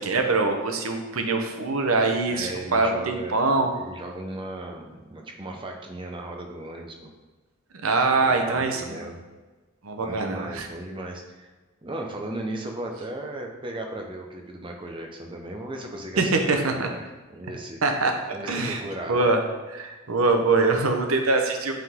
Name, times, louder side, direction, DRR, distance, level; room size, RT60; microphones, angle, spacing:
voice 1, 0.0-3.7 7.8-9.1 9.8-10.7 16.2-16.9 17.8-18.1 18.5-18.8 19.1-19.4 19.7-21.7, right 3 dB, 80° right, 4 dB, 0.9 m, -23 dB
voice 2, 2.3-7.1 8.2-9.2 10.0-11.5 11.8-17.0 17.3-17.8 18.3-19.2, right 1 dB, 25° right, 2 dB, 0.8 m, -36 dB
8.5 x 3.8 x 3.7 m, 1.2 s
head